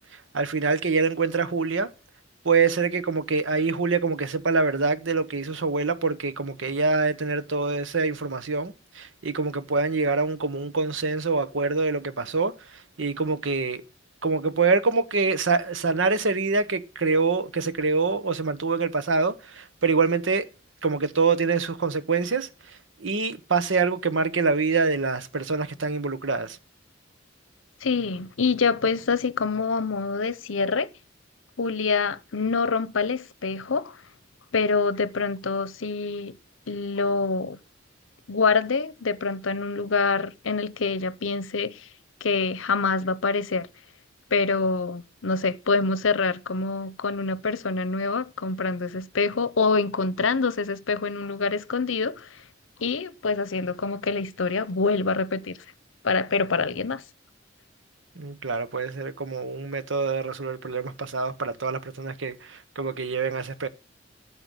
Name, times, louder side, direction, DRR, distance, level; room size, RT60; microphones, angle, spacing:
voice 1, 0.3-1.9 2.4-12.5 13.0-13.8 14.2-20.5 20.8-22.5 23.0-26.6 58.2-63.7, right 4 dB, 75° right, 1.0 m, -25 dB
voice 2, 27.8-30.9 31.6-34.0 34.5-36.4 36.7-37.6 38.3-41.9 42.2-43.7 44.3-52.3 52.8-55.6 56.0-57.0, left 4 dB, 85° left, 0.8 m, -26 dB
9.2 x 7.8 x 7.8 m
head